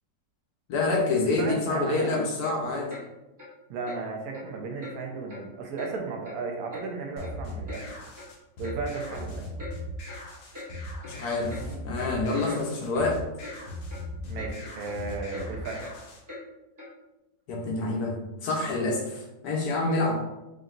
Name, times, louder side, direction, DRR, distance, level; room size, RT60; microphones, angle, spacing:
voice 1, 0.7-2.9 11.0-11.6 11.8-13.2 17.5-20.1, left 3 dB, 65° left, 0 dB, 1.2 m, -27 dB
voice 2, 1.4-2.2 3.7-7.9 8.6-9.4 11.6-11.8 14.2-15.8, right 4 dB, 65° right, 1 dB, 1.0 m, -35 dB
Clock, 1.9-2.1 2.4-2.6 2.9-3.1 3.4-3.5 3.8-4.0 4.3-4.5 4.8-4.9 5.3-5.4 5.8-5.9 6.2-6.9 7.2-7.3 7.7-7.8 8.2-8.3 8.6-8.8 9.1-9.3 9.6-9.7 10.1-10.2 10.5-10.7 11.0-11.1 11.5-11.6 12.0-12.1 12.5-12.6 12.9-13.1 13.4-13.6 13.9-14.0 14.4-14.5 14.8-15.0 15.3-15.5 15.8-15.9 16.3-16.4 16.8-16.9, left 2 dB, 30° right, 0.4 m, -42 dB
sound 1, 7.2-16.2, left 1 dB, 85° left, 1.6 m, -39 dB
5.1 x 2.8 x 2.5 m, 0.96 s
omnidirectional pair, 2.0 m